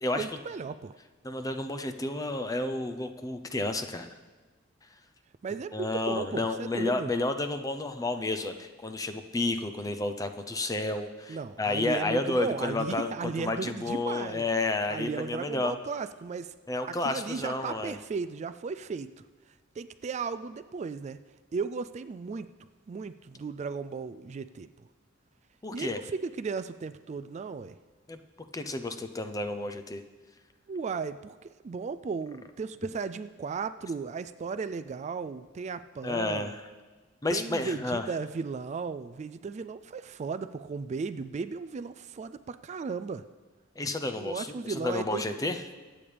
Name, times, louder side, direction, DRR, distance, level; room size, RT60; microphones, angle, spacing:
voice 1, 0.2-1.0 5.4-7.1 11.3-14.5 14.9-16.5 16.9-19.1 19.8-21.2 21.5-22.5 22.9-24.7 25.7-27.7 30.7-36.5 37.3-43.2 44.1-45.4, right 5 dB, 35° right, 11 dB, 0.3 m, -35 dB
voice 2, 1.2-4.1 5.7-15.8 16.7-18.0 25.6-26.0 28.1-28.2 28.5-30.0 36.0-36.6 37.2-38.0 43.8-45.6, left 2 dB, 20° left, 7 dB, 0.6 m, -31 dB
23.5 x 8.7 x 3.4 m, 1.4 s
head